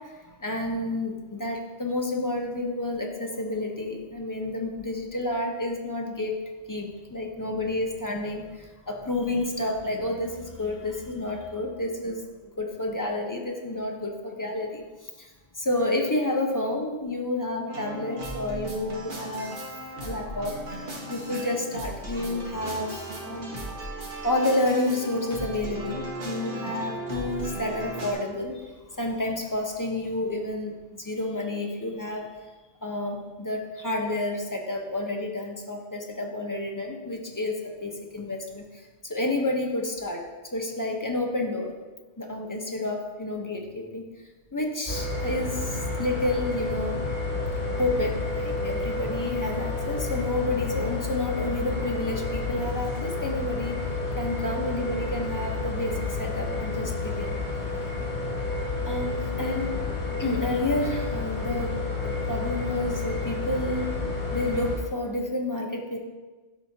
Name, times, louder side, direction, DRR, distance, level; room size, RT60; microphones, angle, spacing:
voice 1, 0.0-6.4 6.7-12.2 12.6-19.6 20.0-23.6 24.2-32.4 32.8-40.2 40.5-41.7 42.2-44.1 44.5-47.1 47.8-53.8 54.2-57.4 58.8-59.7 60.2-64.0 64.3-66.0, left 2 dB, 20° left, 1 dB, 0.7 m, -30 dB
sound 1, 17.7-28.1, right 1 dB, 50° right, 1.4 m, -36 dB
sound 2, 44.9-64.8, left 3 dB, 45° left, 1.9 m, -30 dB
12.0 x 4.9 x 2.8 m, 1.3 s
omnidirectional pair, 1.1 m